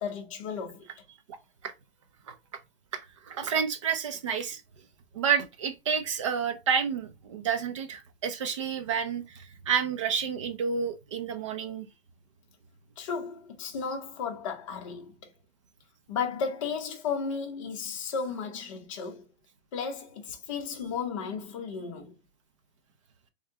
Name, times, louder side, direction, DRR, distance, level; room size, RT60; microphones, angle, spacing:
voice 1, 0.0-0.9 13.0-15.1 16.1-19.3 19.7-22.2, left 6 dB, 30° left, 0.8 m, -34 dB
voice 2, 3.3-4.6 5.1-11.9, right 7 dB, 30° right, 0.5 m, -30 dB
3.6 x 3.2 x 2.8 m
hypercardioid pair, 165°, 32 cm